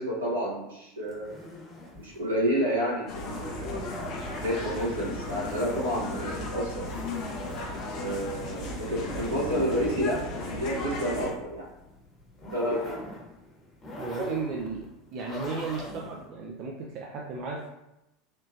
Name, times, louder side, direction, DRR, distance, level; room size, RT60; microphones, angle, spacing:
voice 1, 0.0-1.3 1.9-3.7 4.3-6.8 7.9-11.7 12.5-13.0, equal, 80° right, -6 dB, 1.3 m, -30 dB
sound 1, 1.1-16.3, left 1 dB, 25° left, 1.1 m, -43 dB
sound 2, 3.1-11.3, left 2 dB, 50° left, 0.7 m, -36 dB
sound 3, 8.6-12.4, right 1 dB, ahead, 0.7 m, -42 dB
voice 2, 14.0-14.9 15.1-17.7, right 4 dB, 50° right, -1 dB, 0.5 m, -34 dB
3.5 x 2.7 x 2.6 m, 0.89 s
figure-of-eight pair, 75°, 0 cm